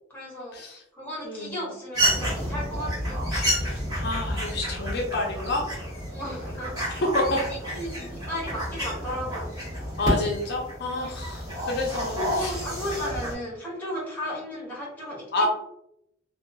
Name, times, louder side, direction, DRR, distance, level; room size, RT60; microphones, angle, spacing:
voice 1, 0.1-3.2 6.1-7.0 7.7-9.5 11.0-11.1 12.1-15.5, equal, 10° left, -4 dB, 0.9 m, -35 dB
voice 2, 1.2-1.6 4.0-5.7 7.1-7.4 10.0-12.6 15.3-15.5, left 2 dB, 55° left, -1 dB, 0.5 m, -28 dB
sound 1, 1.9-13.3, equal, 20° right, 1.4 m, -30 dB
2.7 x 2.3 x 2.5 m, 0.77 s
head